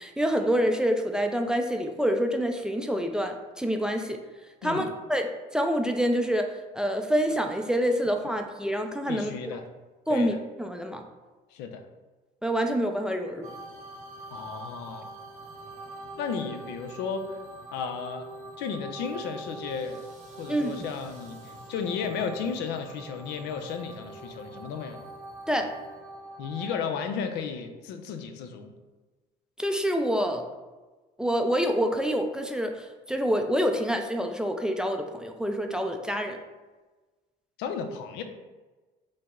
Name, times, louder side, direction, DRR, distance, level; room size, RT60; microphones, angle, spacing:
voice 1, 0.0-4.2 4.6-5.3 5.5-9.6 10.1-11.0 12.4-13.5 20.5-20.7 25.5-25.7 29.6-30.4 31.2-36.4, equal, 5° right, 4 dB, 0.3 m, -27 dB
voice 2, 9.1-9.6 10.1-10.4 11.5-11.8 14.3-15.1 16.2-17.4 17.7-18.2 18.6-20.0 20.4-25.0 26.4-28.7 37.6-38.2, left 6 dB, 90° left, 6 dB, 0.5 m, -34 dB
sound 1, 13.4-26.8, right 2 dB, 45° right, 0.8 m, -44 dB
5.3 x 2.0 x 3.6 m, 1.2 s
cardioid pair, 110°, 17 cm